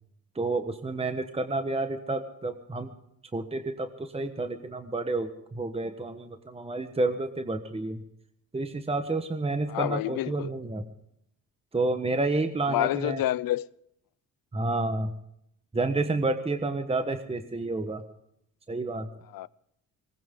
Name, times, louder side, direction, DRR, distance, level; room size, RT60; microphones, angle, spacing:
voice 1, 0.3-2.9 3.3-8.0 8.5-10.8 11.7-13.2 14.5-15.1 15.7-18.0 18.7-19.1, right 2 dB, 15° right, 1.3 m, -30 dB
voice 2, 9.7-10.5 12.6-13.7 19.3-19.5, left 14 dB, 70° left, 0.6 m, -28 dB
19.5 x 19.0 x 3.8 m
cardioid pair, 90°, 36 cm